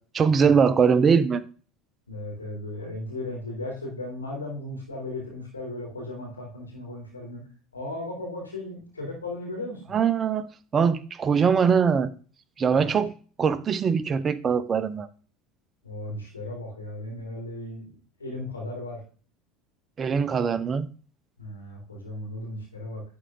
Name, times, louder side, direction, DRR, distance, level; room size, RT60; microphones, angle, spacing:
voice 1, 0.1-1.4 9.9-12.1 12.6-13.1 13.4-15.1 20.0-20.9, right 6 dB, 30° right, 0.9 m, -22 dB
voice 2, 2.1-7.5 7.7-9.8 12.7-12.9 15.8-17.9 18.2-19.0 21.4-23.0, left 1 dB, 90° left, 3.3 m, -36 dB
11.5 x 4.8 x 3.9 m
figure-of-eight pair, 70°, 0 cm